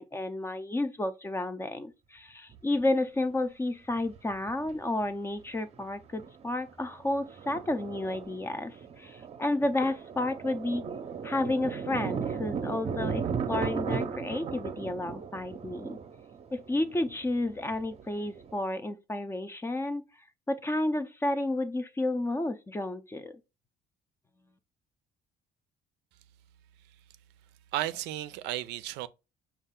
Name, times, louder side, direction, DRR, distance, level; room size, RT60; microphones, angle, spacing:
voice 1, 0.0-10.9 11.2-16.0 16.5-20.0 20.5-23.4, left 2 dB, 15° left, 0.5 m, -31 dB
Thunder, 2.5-2.6 4.0-4.8 5.0-5.1 5.5-5.8 6.2-18.6, right 6 dB, 40° right, 0.6 m, -36 dB
voice 2, 27.7-29.1, right 14 dB, 90° right, 0.4 m, -33 dB
5.4 x 2.4 x 3.5 m
cardioid pair, 110°, 17 cm